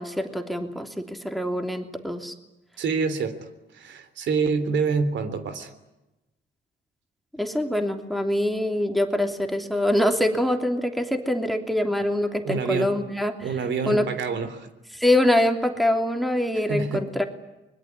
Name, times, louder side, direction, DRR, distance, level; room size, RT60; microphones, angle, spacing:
voice 1, 0.0-2.3 7.4-13.3 13.9-14.1 14.9-17.2, left 1 dB, ahead, 5 dB, 3.1 m, -24 dB
voice 2, 2.8-3.3 3.7-5.7 12.4-12.9 13.4-14.7 16.6-17.1, right 5 dB, 70° right, 10 dB, 3.5 m, -26 dB
24.5 x 21.5 x 9.8 m, 0.99 s
cardioid pair, 90°, 20 cm